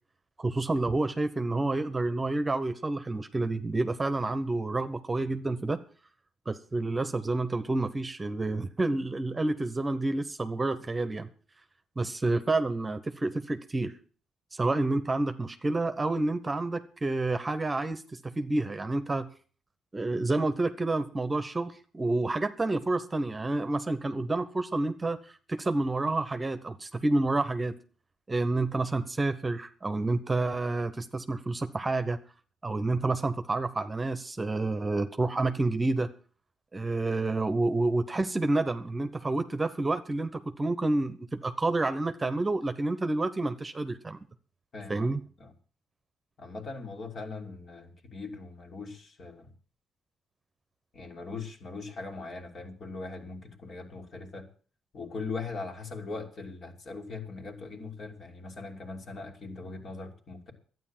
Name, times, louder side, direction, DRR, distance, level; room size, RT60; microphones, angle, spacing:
voice 1, 0.4-5.8 6.5-11.3 12.0-13.9 14.5-19.3 19.9-27.7 28.3-32.2 32.6-36.1 36.7-44.2 44.9-45.2, right 2 dB, 20° right, 10 dB, 1.1 m, -29 dB
voice 2, 44.7-45.1 45.4-45.5 46.4-49.5 50.9-54.5 54.9-60.5, left 3 dB, 50° left, 2 dB, 3.1 m, -40 dB
12.0 x 9.5 x 7.5 m, 0.41 s
cardioid pair, 90°, 0 cm